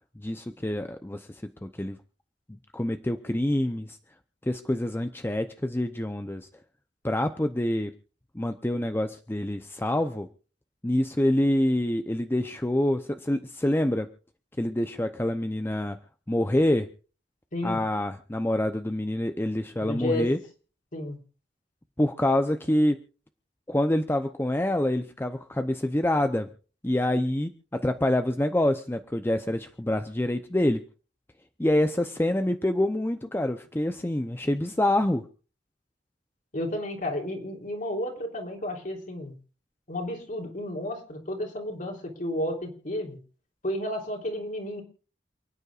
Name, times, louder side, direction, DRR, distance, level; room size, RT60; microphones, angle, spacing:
voice 1, 0.2-1.3 1.6-2.0 2.7-4.0 4.4-6.5 7.0-7.9 8.3-10.3 10.8-14.1 14.6-16.0 16.3-16.9 17.6-20.4 22.0-23.0 23.7-26.5 26.8-30.8 31.6-35.2, left 1 dB, 15° left, 7 dB, 0.7 m, -26 dB
voice 2, 19.8-20.3 20.9-21.2 36.5-39.3 39.9-43.2 43.6-44.8, left 1 dB, 50° left, 2 dB, 3.4 m, -32 dB
28.5 x 9.6 x 2.5 m, 0.38 s
head